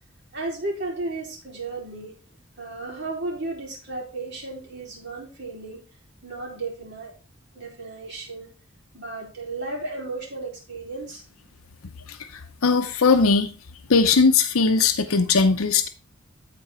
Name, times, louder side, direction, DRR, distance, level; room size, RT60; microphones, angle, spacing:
voice 1, 0.3-2.1 2.6-5.8 6.2-7.1 7.5-8.5 8.9-11.2, right 2 dB, 55° right, -2 dB, 4.3 m, -34 dB
voice 2, 12.1-13.5 13.9-15.9, left 4 dB, 90° left, 7 dB, 0.8 m, -19 dB
13.0 x 4.6 x 4.4 m, 0.33 s
head